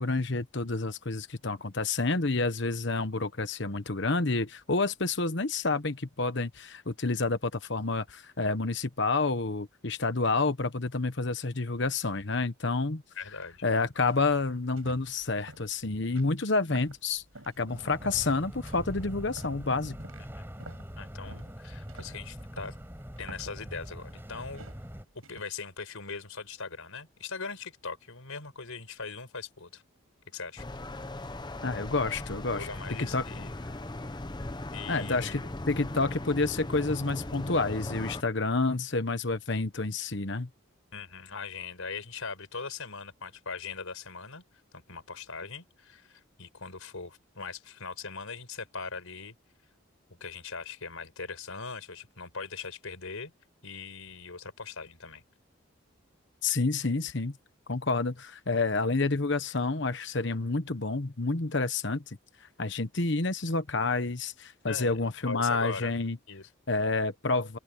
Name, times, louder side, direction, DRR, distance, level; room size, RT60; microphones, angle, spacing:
voice 1, 0.0-13.0 13.6-17.2 17.6-20.0 31.6-32.7 33.0-33.2 34.9-40.5 56.4-57.4 57.7-62.2 62.6-66.2 66.7-67.6, left 3 dB, 55° left, 1.2 m, -29 dB
voice 2, 13.2-13.6 21.0-22.7 23.2-24.7 25.3-29.8 30.3-30.6 32.5-33.5 34.7-35.3 40.9-44.4 44.7-49.3 50.2-53.3 53.6-55.2 64.7-65.9 66.3-66.5, left 4 dB, 90° left, 5.1 m, -40 dB
sound 1, 13.2-17.6 18.0-18.3 18.7-25.4, right 2 dB, 80° right, 6.8 m, -51 dB
sound 2, 17.7-25.0, equal, 10° right, 5.9 m, -43 dB
sound 3, 30.6-38.2, left 2 dB, 20° left, 0.8 m, -38 dB
open air
head